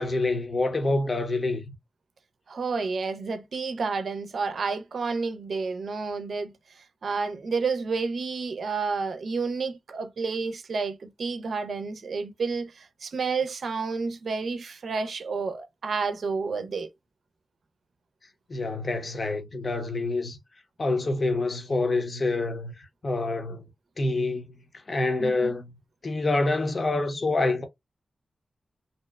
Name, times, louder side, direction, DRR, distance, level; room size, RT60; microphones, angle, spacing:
voice 1, 0.0-1.7 18.5-20.4 20.8-23.7 24.0-24.5 24.9-25.7 26.0-27.7, left 2 dB, 50° left, 0.7 m, -27 dB
voice 2, 2.5-16.9 25.2-25.6, right 4 dB, 75° right, 0.4 m, -30 dB
2.7 x 2.1 x 2.2 m
cardioid pair, 60°, 0 cm